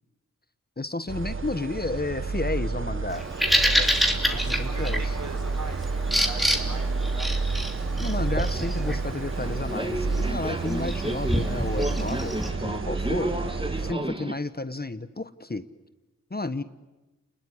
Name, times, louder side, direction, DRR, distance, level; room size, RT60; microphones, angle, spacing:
voice 1, 0.8-3.2 3.8-3.9 4.3-5.0 8.0-13.3 13.8-15.6 16.3-16.6, left 2 dB, 30° left, 13 dB, 1.2 m, -32 dB
sound 1, 1.1-13.9, right 4 dB, 40° right, 0.9 m, -30 dB
Bird vocalization bird call bird song, 3.1-12.5, equal, ahead, 3.2 m, -29 dB
voice 2, 3.3-7.3 13.8-14.0, right 2 dB, 65° right, 3 dB, 6.3 m, -41 dB
Subway metro underground, 9.3-14.3, right 1 dB, 15° right, 2.2 m, -32 dB
29.5 x 21.0 x 9.7 m, 1.1 s
cardioid pair, 50°, 32 cm